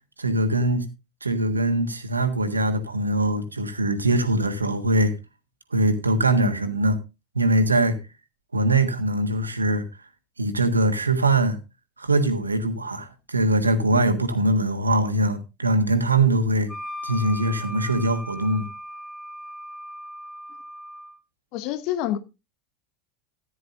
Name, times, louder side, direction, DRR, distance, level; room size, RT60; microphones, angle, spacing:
voice 1, 0.2-0.8 1.2-5.1 5.7-6.9 7.3-8.0 8.5-9.9 10.4-11.6 12.0-16.7 17.0-18.7, right 1 dB, 85° right, 1.5 m, -22 dB
Wind instrument woodwind instrument, 16.7-21.2, left 1 dB, 20° left, 5.6 m, -38 dB
voice 2, 21.5-22.2, left 12 dB, 50° left, 1.1 m, -27 dB
14.5 x 9.9 x 2.7 m
figure-of-eight pair, 80°, 0 cm